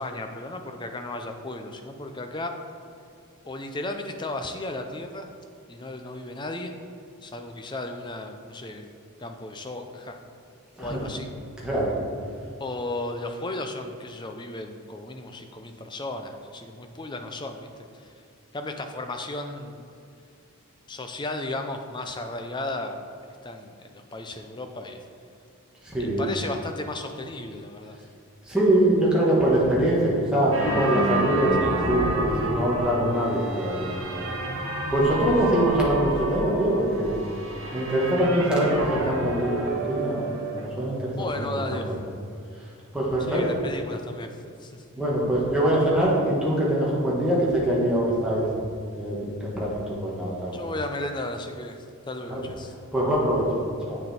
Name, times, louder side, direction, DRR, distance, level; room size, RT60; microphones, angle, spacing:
voice 1, 0.0-2.5 3.4-5.3 5.7-6.7 7.2-8.9 9.2-10.2 10.8-11.3 11.6-11.7 12.6-17.7 17.9-18.1 18.5-19.8 20.9-23.1 23.4-25.0 25.9-28.0 31.6-31.9 41.2-41.9 43.3-44.8 50.5-52.7 53.6-53.7, left 2 dB, 20° left, 5 dB, 0.5 m, -34 dB
voice 2, 25.8-26.3 28.5-31.5 31.9-34.3 34.9-37.2 37.7-41.4 41.7-41.8 42.9-43.4 44.9-48.5 48.9-50.5 52.3-52.4 52.9-53.5 53.9-54.0, right 1 dB, 5° right, -6 dB, 1.5 m, -23 dB
sound 1, 30.5-40.7, right 2 dB, 65° right, 1.0 m, -30 dB
8.3 x 6.6 x 4.3 m, 2.4 s
head